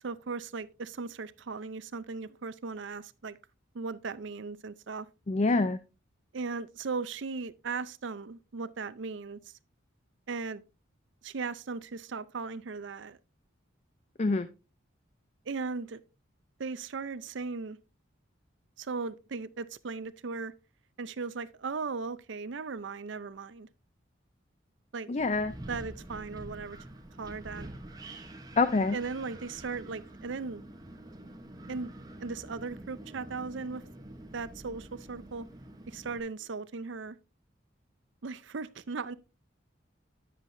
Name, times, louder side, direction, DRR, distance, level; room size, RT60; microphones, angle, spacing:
voice 1, 0.0-3.4 3.7-5.1 6.3-9.4 10.3-10.6 11.2-13.2 15.5-16.0 16.6-17.8 18.8-20.5 21.0-23.7 24.9-25.1 25.7-26.8 27.2-27.7 28.9-30.6 31.7-31.9 32.2-33.8 34.3-35.5 35.9-37.2 38.2-39.1, right 4 dB, 70° right, 0.5 m, -37 dB
voice 2, 5.3-5.8 14.2-14.5 25.1-25.5 28.6-29.0, left 3 dB, 35° left, 0.4 m, -26 dB
Wind, 25.2-36.2, right 1 dB, 20° right, 0.9 m, -47 dB
10.0 x 7.3 x 2.6 m
head